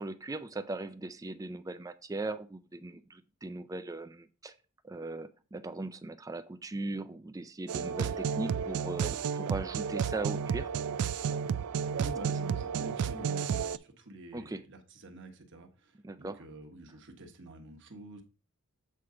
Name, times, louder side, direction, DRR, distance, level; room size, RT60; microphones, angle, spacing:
voice 1, 0.0-4.5 4.8-10.7 14.3-14.6 16.0-16.4, right 2 dB, 15° right, 11 dB, 0.3 m, -39 dB
sound 1, 7.7-13.8, right 7 dB, 90° right, 0.4 m, -32 dB
voice 2, 12.0-18.2, right 1 dB, 55° right, 4 dB, 1.1 m, -47 dB
7.7 x 4.6 x 3.7 m, 0.35 s
head